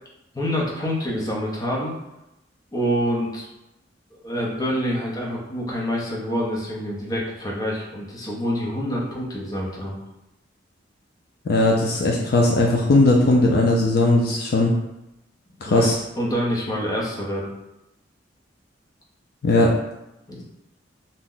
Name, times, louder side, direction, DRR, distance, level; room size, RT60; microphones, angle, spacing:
voice 1, 0.3-1.9 2.7-3.5 4.2-10.0 15.6-15.9 16.2-17.5 20.3-20.4, equal, 20° left, -3 dB, 0.7 m, -26 dB
voice 2, 11.5-14.7 15.6-16.0 19.4-19.7, left 2 dB, 55° left, -1 dB, 0.4 m, -18 dB
2.8 x 2.1 x 3.7 m, 0.91 s
head